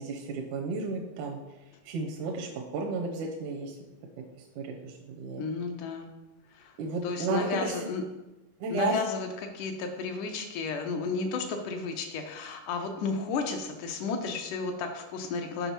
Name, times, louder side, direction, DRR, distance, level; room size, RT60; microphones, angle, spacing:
voice 1, 0.0-1.4 1.9-3.8 4.6-5.4 6.8-7.9 8.6-9.0, right 3 dB, 80° right, 1 dB, 2.1 m, -33 dB
voice 2, 5.4-6.1 6.5-6.7 7.0-8.0 8.7-9.3 9.5-15.7, left 4 dB, 75° left, 4 dB, 2.2 m, -33 dB
6.7 x 4.9 x 4.4 m, 1.0 s
omnidirectional pair, 3.7 m